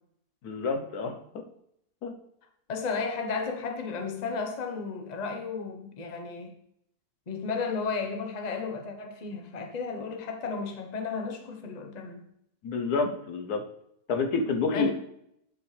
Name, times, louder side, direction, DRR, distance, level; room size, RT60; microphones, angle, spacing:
voice 1, 0.4-1.2 2.0-2.1 12.6-13.6 14.1-14.9, left 4 dB, 75° left, 4 dB, 1.4 m, -28 dB
voice 2, 2.7-6.6 7.3-12.2 14.7-14.9, left 4 dB, 30° left, 4 dB, 0.9 m, -33 dB
10.5 x 5.5 x 3.3 m, 0.74 s
omnidirectional pair, 1.7 m